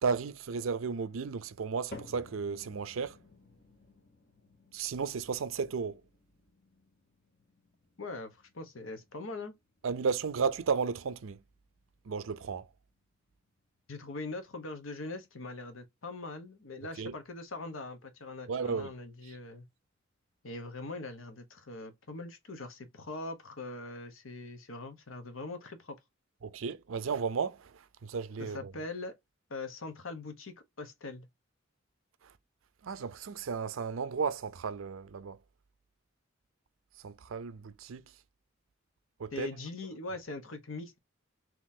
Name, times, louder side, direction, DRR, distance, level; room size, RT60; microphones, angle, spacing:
voice 1, 0.0-3.2 4.7-6.0 9.8-11.4 12.1-12.7 17.0-17.1 18.5-18.9 26.4-28.7 32.8-35.4 37.0-38.0 39.2-39.5, right 5 dB, 85° right, 0.5 m, -34 dB
sound 1, 1.9-18.2 18.6-19.1 19.7-19.8 20.6-20.7, left 2 dB, 50° left, 1.0 m, -57 dB
voice 2, 8.0-9.5 13.9-19.7 20.4-26.0 28.4-29.2 29.5-31.3 39.3-41.0, left 3 dB, 90° left, 0.9 m, -42 dB
3.7 x 3.0 x 2.7 m
head